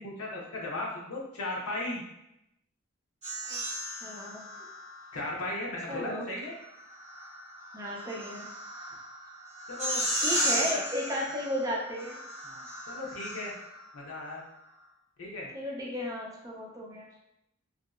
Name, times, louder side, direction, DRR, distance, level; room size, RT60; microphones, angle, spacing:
voice 1, 0.0-2.0 5.1-6.5 9.7-10.0 10.3-10.8 12.4-13.5 13.9-14.4 15.2-15.5, left 2 dB, 80° left, -3 dB, 0.7 m, -36 dB
sound 1, 3.2-5.2 6.6-13.8, equal, 35° right, 0.8 m, -35 dB
voice 2, 3.5-4.4 5.9-6.3 7.7-8.5 10.2-12.2 15.5-17.1, equal, 15° right, -2 dB, 0.4 m, -34 dB
2.6 x 2.0 x 2.3 m, 0.84 s
head